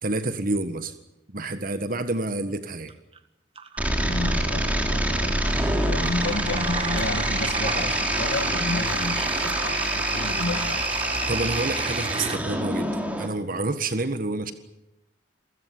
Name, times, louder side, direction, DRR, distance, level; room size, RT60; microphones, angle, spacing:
voice 1, 0.0-0.9 1.3-2.9 11.3-14.5, right 2 dB, 45° right, 1.6 m, -28 dB
sound 1, 2.9-3.2 3.6-12.4, right 4 dB, 30° right, 1.8 m, -33 dB
sound 2, 3.8-13.3, right 1 dB, 10° right, 3.1 m, -26 dB
voice 2, 4.0-10.8, left 2 dB, 75° left, 1.7 m, -31 dB
28.0 x 16.0 x 9.8 m
head